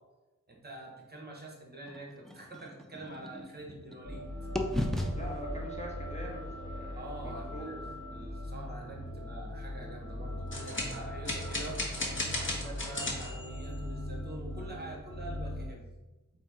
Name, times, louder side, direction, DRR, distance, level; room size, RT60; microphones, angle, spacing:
voice 1, 0.5-4.3 6.9-7.8 8.1-11.8 12.3-15.9, right 1 dB, 30° right, -1 dB, 1.0 m, -45 dB
sound 1, 1.9-4.2 4.6-8.5, left 1 dB, ahead, 0.4 m, -38 dB
sound 2, 4.0-15.7, left 1 dB, 75° left, 1.3 m, -40 dB
voice 2, 5.2-7.8, equal, 20° left, -2 dB, 0.9 m, -43 dB
sound 3, 10.5-13.7, left 2 dB, 40° left, 1.1 m, -35 dB
4.0 x 2.6 x 4.8 m, 1.1 s
wide cardioid pair, 90°, 32 cm